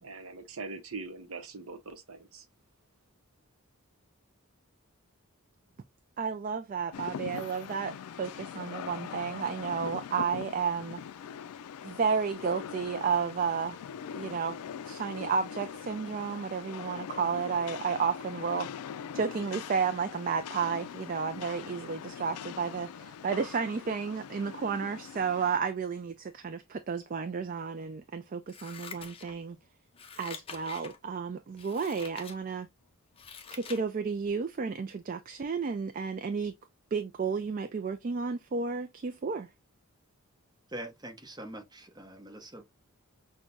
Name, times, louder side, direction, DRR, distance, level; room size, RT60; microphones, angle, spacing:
voice 1, 0.0-2.5, right 3 dB, 70° right, 0.7 m, -42 dB
voice 2, 6.2-11.0 11.8-13.8 14.2-14.6 14.9-18.7 19.1-29.6 30.2-32.7 33.5-36.5 36.9-39.5, right 5 dB, 35° right, 0.3 m, -32 dB
Rain, 6.9-25.6, left 8 dB, 90° left, 0.3 m, -42 dB
Scissors, 28.5-29.6 29.9-31.0 31.5-32.4 32.8-33.9 34.2-34.3, left 6 dB, 25° left, 0.5 m, -46 dB
voice 3, 40.7-42.6, right 1 dB, 20° right, 0.9 m, -43 dB
6.1 x 2.2 x 2.5 m
head